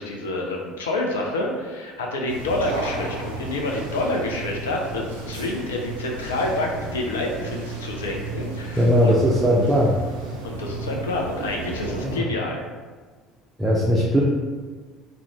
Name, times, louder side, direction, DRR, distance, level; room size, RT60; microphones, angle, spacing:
voice 1, 0.0-9.1 10.4-12.6, left 2 dB, 75° left, 0 dB, 0.4 m, -28 dB
sound 1, 2.3-12.2, right 3 dB, 75° right, 0.3 m, -33 dB
voice 2, 8.8-10.0 12.0-12.2 13.6-14.2, equal, 10° right, -5 dB, 0.4 m, -19 dB
2.4 x 2.0 x 2.9 m, 1.4 s
figure-of-eight pair, 60°, 0 cm